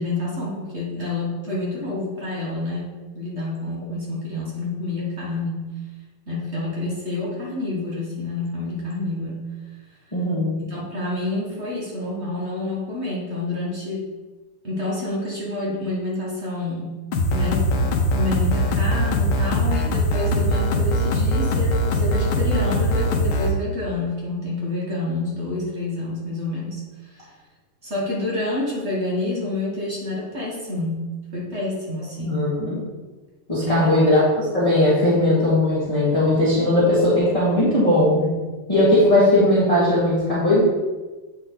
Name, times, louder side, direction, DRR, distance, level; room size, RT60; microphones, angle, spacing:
voice 1, 0.0-5.7 6.3-9.5 10.7-14.0 14.6-16.9 17.3-26.8 27.1-27.3 27.8-32.5 33.6-34.1, left 2 dB, 35° right, -4 dB, 1.4 m, -28 dB
voice 2, 10.1-10.5 32.2-32.8 33.5-38.3 38.7-40.6, left 1 dB, 15° left, -10 dB, 1.6 m, -18 dB
sound 1, 17.1-23.5, equal, 75° left, 1.5 m, -21 dB
8.1 x 4.1 x 3.8 m, 1.2 s
omnidirectional pair, 2.3 m